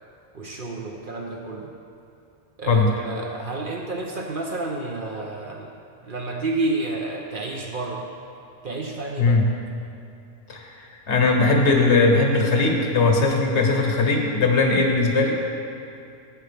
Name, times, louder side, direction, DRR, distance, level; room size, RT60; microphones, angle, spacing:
voice 1, 0.3-1.7 2.6-5.8 6.0-8.1 8.6-9.4, right 2 dB, 50° right, 0 dB, 0.8 m, -30 dB
voice 2, 10.5-15.4, left 3 dB, 60° left, 1 dB, 1.2 m, -19 dB
11.0 x 7.9 x 3.4 m, 2.6 s
omnidirectional pair, 1.3 m